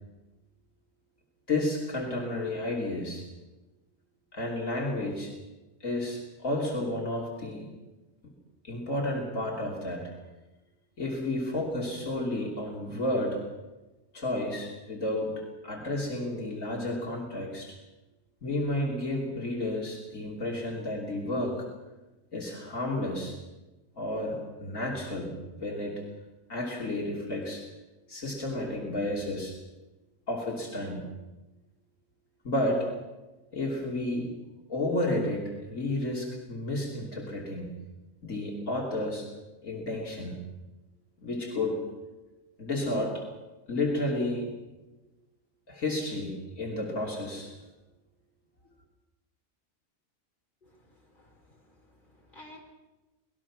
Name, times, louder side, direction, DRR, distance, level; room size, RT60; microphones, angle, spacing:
voice 1, 1.5-3.2 4.3-5.3 5.8-7.7 8.2-8.3 8.6-10.1 11.0-13.4 14.1-17.8 18.4-21.7 22.3-23.4 24.0-26.0 26.5-27.6 28.1-29.6 30.3-31.0 32.4-32.9 33.5-34.3 34.7-37.7 38.2-39.3 39.6-40.4 41.2-41.8 42.6-43.3 43.7-44.5 45.7-47.5, left 1 dB, 70° left, -2 dB, 3.5 m, -31 dB
voice 2, 50.6-52.6, left 1 dB, 35° left, 0 dB, 4.6 m, -54 dB
26.0 x 19.5 x 6.2 m, 1.1 s
omnidirectional pair, 1.4 m